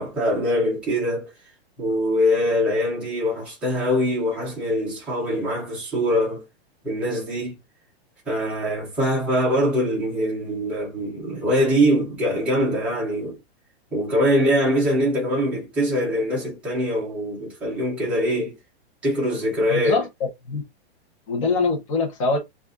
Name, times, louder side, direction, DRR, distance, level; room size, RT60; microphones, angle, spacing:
voice 1, 0.0-1.3 1.8-6.4 6.8-7.6 8.3-13.4 13.9-18.6 19.0-20.0, equal, 5° right, 0.5 m, -23 dB
voice 2, 19.7-20.1 20.5-20.6 21.3-22.4, left 3 dB, 30° left, 0.8 m, -23 dB
6.3 x 2.5 x 2.4 m
supercardioid pair, 180°, 32 cm